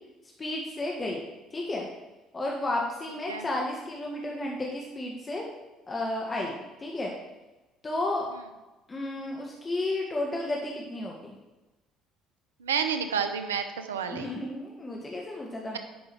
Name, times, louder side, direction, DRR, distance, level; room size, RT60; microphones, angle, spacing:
voice 1, 0.4-1.2 1.5-1.9 2.3-5.4 5.9-7.1 7.8-8.3 8.9-11.4 14.1-15.8, left 2 dB, 30° left, -2 dB, 1.7 m, -32 dB
voice 2, 12.6-14.3, right 7 dB, 90° right, 8 dB, 0.7 m, -30 dB
10.5 x 5.3 x 4.7 m, 1.1 s
hypercardioid pair, 60°, 0 cm